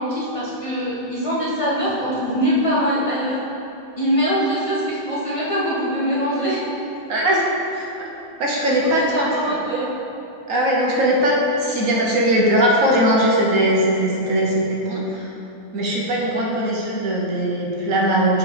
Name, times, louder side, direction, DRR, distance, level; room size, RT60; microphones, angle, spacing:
voice 1, 0.0-3.4 4.0-6.6 8.7-9.9, equal, 25° left, -7 dB, 1.1 m, -23 dB
voice 2, 7.1-7.5 8.0-8.1 8.4-9.6 10.5-15.3 15.7-18.4, equal, 85° right, -2 dB, 1.4 m, -20 dB
6.5 x 3.8 x 4.7 m, 2.8 s
omnidirectional pair, 1.3 m